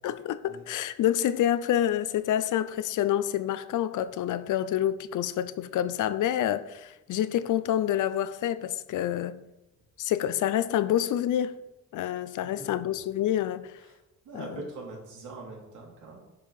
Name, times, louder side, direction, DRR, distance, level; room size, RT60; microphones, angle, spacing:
voice 1, 0.0-9.4 10.0-11.6 11.9-13.7 14.3-14.5, left 11 dB, 85° left, 0.6 m, -27 dB
voice 2, 12.4-12.8 13.8-14.0 14.2-16.2, right 3 dB, 90° right, 3.0 m, -42 dB
10.5 x 4.6 x 5.5 m
cardioid pair, 120°, 30 cm